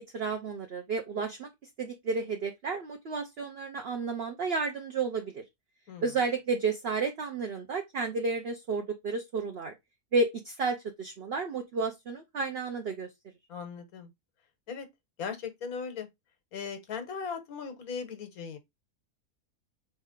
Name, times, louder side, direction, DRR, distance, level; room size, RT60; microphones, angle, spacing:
voice 1, 0.0-1.5 1.8-5.4 6.0-9.7 10.1-13.1, right 4 dB, 55° right, 0.8 m, -32 dB
voice 2, 13.5-14.1 14.7-14.9 15.2-16.1 16.5-18.6, left 6 dB, 85° left, 1.4 m, -38 dB
4.2 x 3.3 x 3.6 m
omnidirectional pair, 1.5 m